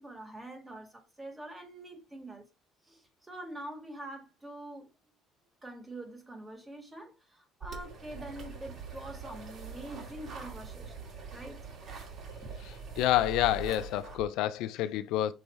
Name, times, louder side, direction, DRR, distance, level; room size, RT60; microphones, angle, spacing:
voice 1, 0.0-2.4 2.8-4.9 5.6-11.0 11.3-11.7 12.4-12.5, right 1 dB, 15° right, 2.1 m, -45 dB
sound 1, 7.6-14.2, right 5 dB, 45° right, 2.6 m, -43 dB
voice 2, 13.0-15.3, left 13 dB, 75° left, 0.5 m, -28 dB
6.8 x 3.2 x 4.5 m
cardioid pair, 120°, 0 cm